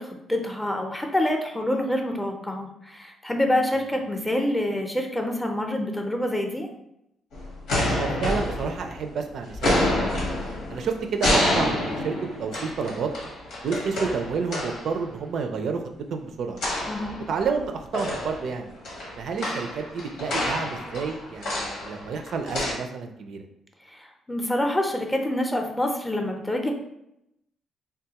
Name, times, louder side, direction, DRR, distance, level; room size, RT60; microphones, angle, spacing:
voice 1, 0.0-6.7 16.9-17.2 23.9-26.7, left 1 dB, 10° left, 3 dB, 0.5 m, -26 dB
sound 1, 7.3-9.2 9.5-14.9 16.6-17.6 17.9-22.7, left 1 dB, 85° left, 1.0 m, -28 dB
voice 2, 7.8-10.2 10.7-13.1 13.6-15.8 16.1-16.6 17.3-18.7 19.2-23.4, right 5 dB, 65° right, 5 dB, 0.3 m, -30 dB
3.5 x 2.3 x 2.8 m, 0.81 s
cardioid pair, 90°, 0 cm